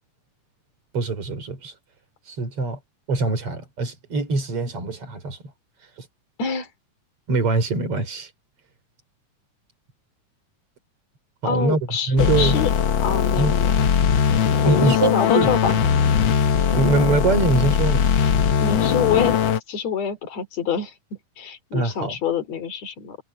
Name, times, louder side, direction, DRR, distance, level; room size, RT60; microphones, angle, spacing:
voice 1, 0.9-1.7 2.3-2.8 3.1-5.4 6.0-6.1 7.3-8.3 11.4-11.8 12.1-12.6 13.4-13.6 14.6-15.5 16.7-18.1 21.7-22.2, right 3 dB, 45° right, 5.2 m, -23 dB
voice 2, 11.4-12.7 13.0-13.8 14.6-15.8 18.6-19.3 19.7-23.2, left 7 dB, 55° left, 4.2 m, -26 dB
sound 1, 12.2-19.6, left 8 dB, 70° left, 1.1 m, -20 dB
omnidirectional pair, 3.8 m